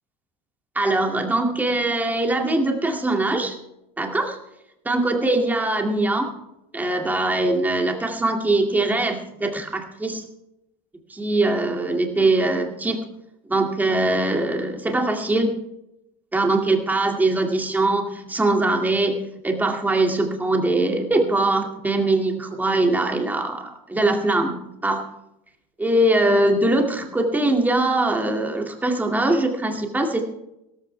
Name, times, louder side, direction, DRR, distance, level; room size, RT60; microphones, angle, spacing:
voice 1, 0.8-3.6 4.0-4.4 4.8-6.3 6.7-10.2 11.1-13.0 13.5-15.5 16.3-19.2 19.4-25.0 25.8-30.2, right 2 dB, 10° right, 2 dB, 2.2 m, -22 dB
16.5 x 14.5 x 3.3 m, 0.86 s
cardioid pair, 140°, 18 cm